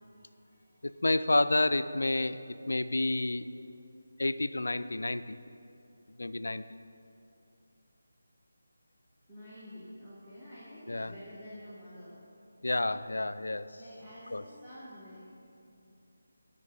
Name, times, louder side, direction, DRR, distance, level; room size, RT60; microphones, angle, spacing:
voice 1, 0.0-1.0 9.3-12.2 13.8-15.3, equal, ahead, -16 dB, 1.5 m, -49 dB
voice 2, 0.8-3.5 4.2-5.4 6.2-6.6 10.9-11.1 12.6-13.8 14.3-14.4, left 2 dB, 65° left, 13 dB, 0.3 m, -30 dB
12.5 x 5.1 x 5.3 m, 2.7 s
figure-of-eight pair, 155°, 0 cm